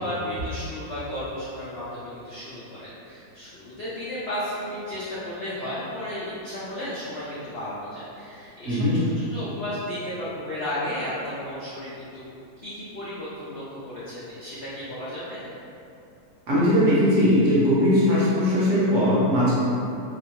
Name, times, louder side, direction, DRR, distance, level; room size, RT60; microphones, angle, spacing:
voice 1, 0.0-12.2 12.6-15.5, left 1 dB, 85° left, -9 dB, 0.5 m, -34 dB
voice 2, 8.7-9.0 16.5-19.5, equal, 60° right, -8 dB, 0.9 m, -20 dB
2.8 x 2.2 x 2.8 m, 2.6 s
omnidirectional pair, 1.7 m